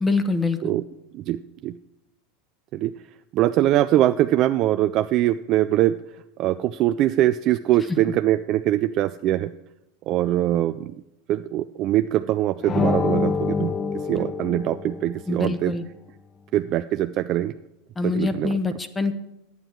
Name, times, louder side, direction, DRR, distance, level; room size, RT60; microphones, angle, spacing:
voice 1, 0.0-0.6 14.2-14.3 15.3-15.8 18.0-19.1, left 3 dB, 15° left, 10 dB, 0.9 m, -24 dB
voice 2, 1.1-1.8 2.7-2.9 3.3-6.0 6.4-9.5 10.1-10.9 11.3-15.7 16.5-17.6 18.0-18.6, right 13 dB, 45° right, 10 dB, 0.3 m, -22 dB
sound 1, 12.6-15.3, left 5 dB, 30° left, 0.5 m, -26 dB
10.0 x 9.5 x 4.7 m, 0.88 s
hypercardioid pair, 90°, 0 cm